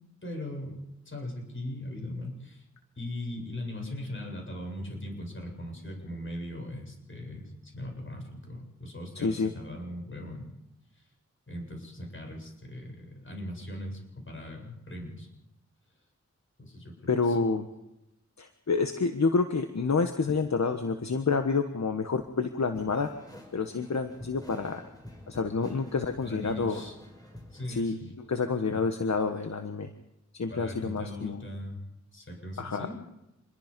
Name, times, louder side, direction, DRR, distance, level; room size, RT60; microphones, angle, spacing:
voice 1, 0.2-0.8 1.1-2.7 3.0-10.5 11.5-15.3 16.6-17.4 26.2-26.9 27.5-28.1 28.7-28.9 30.5-31.8 32.1-33.0, left 1 dB, 45° left, 1 dB, 7.9 m, -39 dB
voice 2, 9.1-9.5 17.1-17.7 18.4-23.1 23.5-24.8 25.3-26.8 27.7-27.9 28.3-29.9 30.3-31.4 32.6-32.9, left 4 dB, 65° left, 7 dB, 1.4 m, -28 dB
sound 1, 22.7-27.8, left 1 dB, 15° left, 6.5 m, -48 dB
27.0 x 22.0 x 5.3 m, 0.89 s
wide cardioid pair, 75°, 29 cm